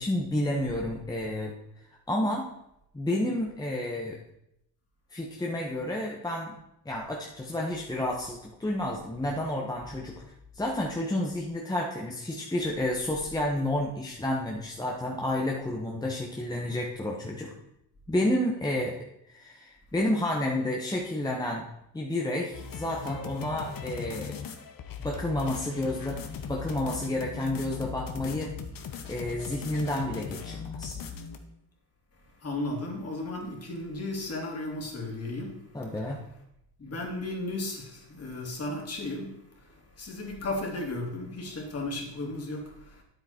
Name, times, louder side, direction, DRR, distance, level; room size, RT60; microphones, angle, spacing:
voice 1, 0.0-1.5 2.1-2.5 2.9-4.2 5.1-6.6 6.8-10.1 10.5-17.5 18.1-19.0 19.3-21.7 21.9-24.3 25.0-28.5 29.1-31.0 35.7-36.2, left 1 dB, 10° left, -1 dB, 1.2 m, -30 dB
sound 1, 22.5-31.4, left 7 dB, 50° left, 1.3 m, -39 dB
voice 2, 32.4-35.6 36.8-39.3 39.6-43.0, left 2 dB, 35° left, -1 dB, 2.9 m, -35 dB
9.6 x 8.2 x 4.4 m, 0.80 s
cardioid pair, 110°, 42 cm